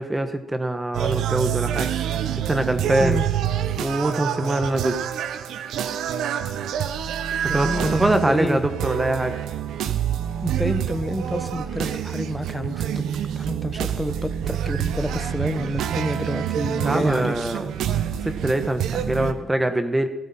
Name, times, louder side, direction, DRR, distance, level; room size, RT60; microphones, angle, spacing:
voice 1, 0.0-1.9 2.5-3.2 3.8-5.0 7.5-9.3 16.8-17.7 18.2-20.1, right 1 dB, 15° right, 8 dB, 1.2 m, -23 dB
sound 1, 0.9-19.3, right 9 dB, 80° right, 0.9 m, -27 dB
voice 2, 7.5-8.6 10.4-12.8 13.4-17.3, equal, ahead, 11 dB, 1.0 m, -28 dB
17.5 x 12.5 x 4.3 m, 0.97 s
cardioid pair, 90°, 0 cm